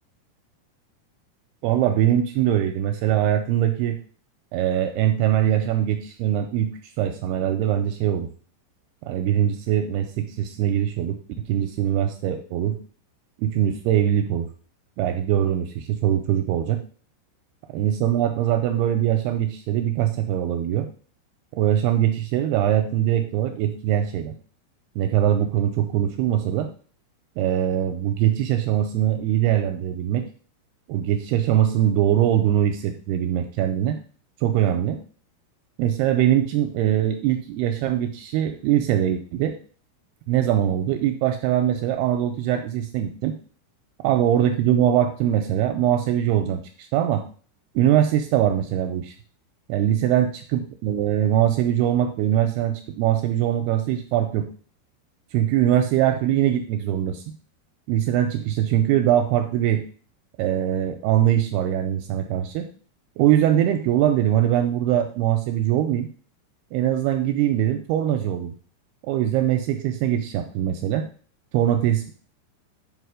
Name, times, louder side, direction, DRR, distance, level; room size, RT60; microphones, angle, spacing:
voice 1, 1.6-4.0 4.5-6.7 7.0-8.3 9.1-12.8 13.4-14.5 15.0-16.8 17.7-20.9 21.5-24.4 25.0-26.7 27.4-30.3 30.9-34.0 34.4-35.0 35.8-39.6 40.3-43.4 44.0-46.6 46.9-47.2 47.8-49.1 49.7-54.5 55.3-57.3 57.9-59.8 60.4-62.7 63.2-66.1 66.7-68.5 69.0-71.1 71.5-72.1, right 11 dB, 80° right, 5 dB, 2.4 m, -22 dB
5.9 x 5.1 x 4.8 m, 0.42 s
omnidirectional pair, 4.9 m